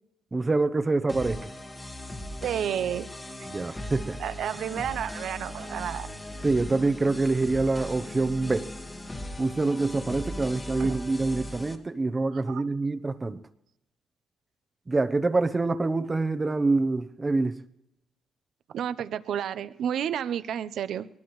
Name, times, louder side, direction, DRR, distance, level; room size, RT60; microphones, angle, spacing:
voice 1, 0.3-1.5 3.5-4.2 6.4-8.7 9.4-13.4 14.9-17.6, right 3 dB, 25° right, 10 dB, 0.8 m, -26 dB
sound 1, 1.1-11.7, left 1 dB, 20° left, 1.5 m, -38 dB
voice 2, 2.4-3.1 4.2-6.1 10.8-11.0 12.3-12.6 18.7-21.1, right 9 dB, 70° right, 14 dB, 0.7 m, -31 dB
sound 2, 5.4-11.8, left 5 dB, 75° left, 2.7 m, -55 dB
21.0 x 19.5 x 3.2 m, 0.86 s
cardioid pair, 90°, 0 cm